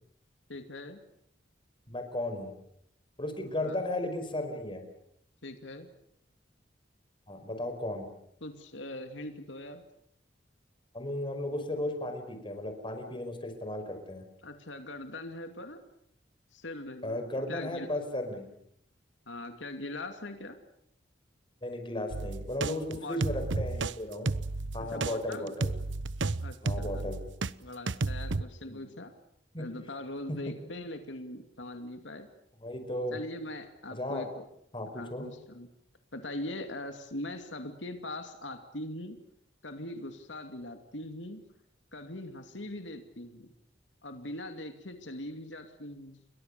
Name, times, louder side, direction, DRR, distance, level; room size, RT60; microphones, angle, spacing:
voice 1, 0.5-1.0 3.6-3.8 5.4-5.9 8.4-9.8 14.4-15.8 16.5-17.2 17.5-17.9 19.3-20.6 22.9-23.2 24.9-25.5 26.4-27.0 27.6-29.1 29.6-32.3 33.1-34.4 34.9-35.7 36.1-39.2 39.6-41.4 41.9-43.5 44.0-46.2, left 1 dB, 85° left, 6 dB, 2.6 m, -41 dB
voice 2, 1.9-2.5 3.2-4.8 7.3-8.0 10.9-14.2 17.0-18.5 21.6-24.3 24.7-25.7 26.6-27.2 28.7-28.9 29.5-29.7 30.3-30.4 32.6-33.2 34.0-34.3 34.7-35.3, left 1 dB, 25° left, 7 dB, 5.1 m, -35 dB
sound 1, 22.1-27.5 27.9-28.4, right 3 dB, 80° right, 0.9 m, -32 dB
30.0 x 23.0 x 6.8 m, 0.72 s
head